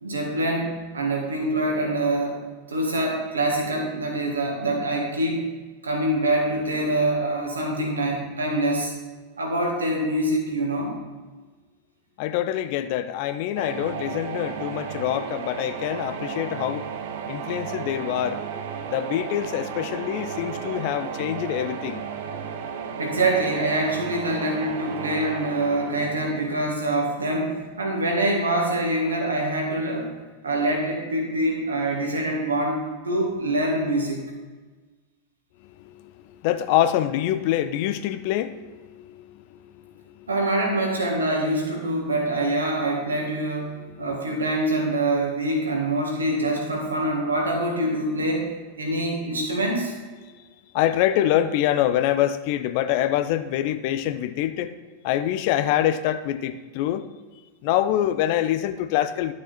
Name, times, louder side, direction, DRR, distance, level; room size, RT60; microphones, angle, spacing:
voice 1, 0.0-2.4 2.7-5.5 5.8-8.9 9.4-10.9 23.0-30.1 30.4-34.3 40.3-48.5 48.8-49.9, right 1 dB, 75° right, 0 dB, 2.0 m, -25 dB
voice 2, 12.2-16.9 17.3-18.4 18.9-22.0 35.8-40.3 43.8-44.1 50.7-54.7 55.0-57.1 57.6-59.3, left 12 dB, 45° left, 12 dB, 0.5 m, -25 dB
sound 1, 13.6-27.4, right 7 dB, 55° right, 0.8 m, -34 dB
11.5 x 6.4 x 4.3 m, 1.3 s
figure-of-eight pair, 90°, 0 cm